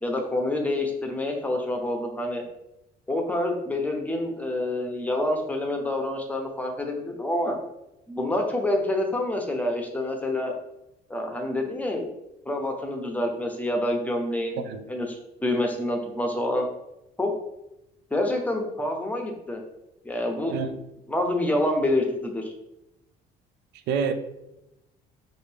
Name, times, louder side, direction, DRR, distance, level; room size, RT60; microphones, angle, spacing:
voice 1, 0.0-2.4 3.1-7.6 8.1-10.5 11.1-12.1 12.5-14.6 14.9-16.7 17.2-17.3 18.1-19.6 20.0-20.6 21.1-22.4, left 1 dB, 10° left, 0.8 m, -27 dB
voice 2, 20.5-20.8 23.9-24.1, right 6 dB, 80° right, 0.5 m, -27 dB
5.6 x 2.6 x 3.4 m
cardioid pair, 110°, 17 cm